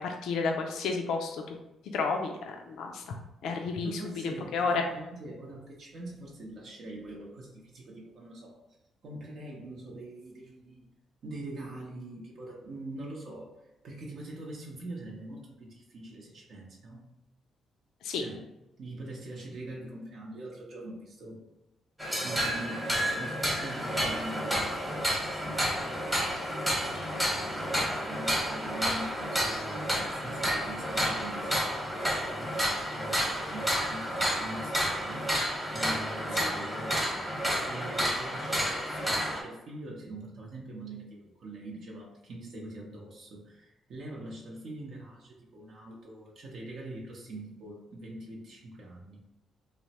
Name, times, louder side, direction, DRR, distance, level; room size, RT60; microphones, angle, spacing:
voice 1, 0.0-1.6 1.9-4.8 18.0-18.2 36.4-36.5, left 4 dB, 80° left, 3 dB, 0.3 m, -32 dB
voice 2, 3.8-8.6 9.0-10.9 11.2-13.5 13.8-17.0 18.1-18.4 18.8-21.4 22.2-26.3 26.9-49.3, right 1 dB, 60° right, -2 dB, 0.7 m, -43 dB
sound 1, 22.0-39.4, equal, 5° right, 0.9 m, -30 dB
3.1 x 2.0 x 2.8 m, 0.96 s
cardioid pair, 90°, 0 cm